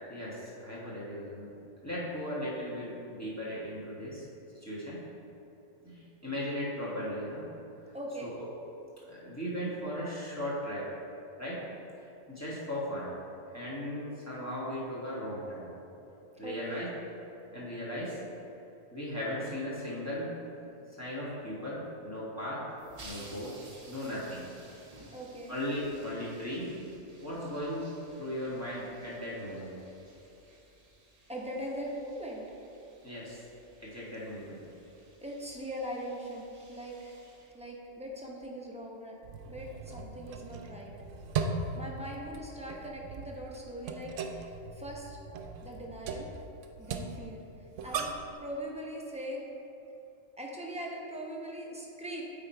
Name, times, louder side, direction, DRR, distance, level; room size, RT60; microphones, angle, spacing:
voice 1, 0.0-1.5 1.8-4.2 4.5-5.0 5.8-7.4 8.2-8.3 9.1-10.8 11.4-11.6 12.0-13.1 13.5-15.7 16.4-16.9 17.5-18.2 18.9-20.3 21.0-22.6 23.0-23.5 23.9-24.5 25.5-26.7 27.2-29.8 33.0-33.4 33.8-34.6, equal, 10° left, -8 dB, 1.6 m, -37 dB
voice 2, 7.9-8.3 16.4-16.9 25.1-25.6 31.3-32.6 35.2-37.2 37.5-39.2 39.5-40.9 41.7-45.2 45.6-46.3 46.8-47.4 47.8-48.1 48.4-49.4 50.4-52.2, equal, 5° right, -3 dB, 0.7 m, -41 dB
sound 1, 22.8-38.2, right 2 dB, 35° right, 0.9 m, -56 dB
sound 2, 39.2-48.3, right 4 dB, 75° right, 0.9 m, -39 dB
8.6 x 3.8 x 4.5 m, 2.9 s
omnidirectional pair, 1.3 m